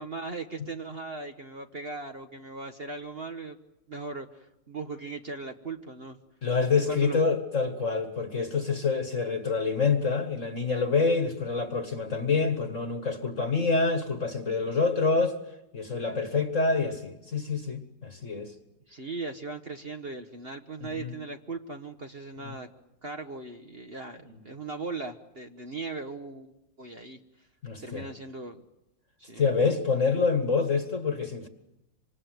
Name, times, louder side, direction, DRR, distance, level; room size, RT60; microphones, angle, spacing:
voice 1, 0.0-3.6 3.9-6.2 6.9-7.2 18.9-22.7 23.0-27.2 27.8-28.6 29.2-29.4, right 3 dB, 35° right, 1.3 m, -38 dB
voice 2, 6.4-15.4 15.7-18.5 20.8-21.2 22.4-22.6 27.6-28.1 29.4-31.5, left 4 dB, 45° left, 1.9 m, -27 dB
27.0 x 26.0 x 7.9 m
omnidirectional pair, 2.0 m